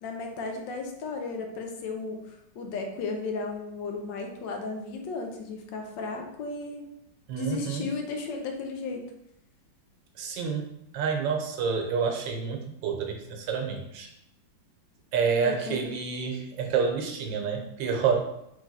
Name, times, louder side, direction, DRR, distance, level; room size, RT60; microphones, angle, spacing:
voice 1, 0.0-2.2 2.5-6.8 7.3-9.0 15.4-15.9, left 4 dB, 80° left, 3 dB, 1.4 m, -34 dB
voice 2, 7.3-7.9 10.2-14.1 15.1-18.2, right 6 dB, 80° right, 3 dB, 1.4 m, -28 dB
3.6 x 3.3 x 4.0 m, 0.80 s
omnidirectional pair, 2.0 m